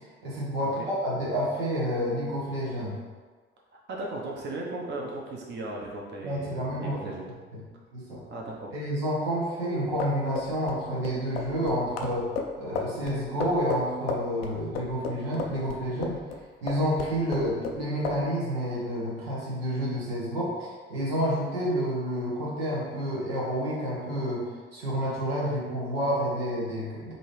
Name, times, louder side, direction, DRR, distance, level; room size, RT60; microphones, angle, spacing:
voice 1, 0.2-3.0 6.2-7.0 7.9-8.2 8.7-12.3 12.6-16.2 16.6-27.1, equal, 80° right, -6 dB, 1.0 m, -29 dB
voice 2, 3.9-7.3 8.3-8.7, right 2 dB, 35° right, -2 dB, 0.9 m, -36 dB
sound 1, 9.8-16.4 16.7-17.8 18.0-18.2, left 4 dB, 75° left, 0.5 m, -33 dB
5.2 x 2.7 x 3.2 m, 1.5 s
figure-of-eight pair, 50°, 30 cm